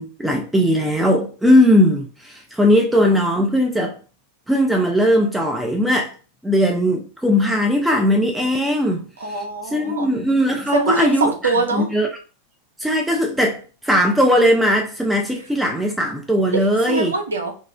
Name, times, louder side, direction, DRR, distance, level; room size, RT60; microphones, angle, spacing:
voice 1, 0.0-4.0 4.5-6.1 6.4-9.0 9.7-11.3 11.7-12.1 12.8-17.1, equal, 5° right, 0.6 m, -18 dB
voice 2, 9.2-10.1 10.7-11.9 16.5-17.6, right 3 dB, 70° right, 0.6 m, -23 dB
3.1 x 2.4 x 3.4 m
figure-of-eight pair, 90°, 0 cm